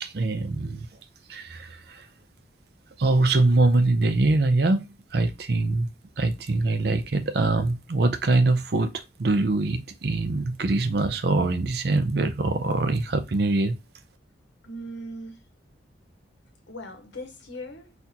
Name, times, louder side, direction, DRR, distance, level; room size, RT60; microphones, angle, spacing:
voice 1, 0.0-0.9 1.3-2.1 3.0-5.9 6.2-13.8, right 2 dB, 60° right, 0.5 m, -23 dB
voice 2, 14.6-15.4 16.7-17.9, equal, 75° left, 0.8 m, -39 dB
4.1 x 2.5 x 2.7 m
head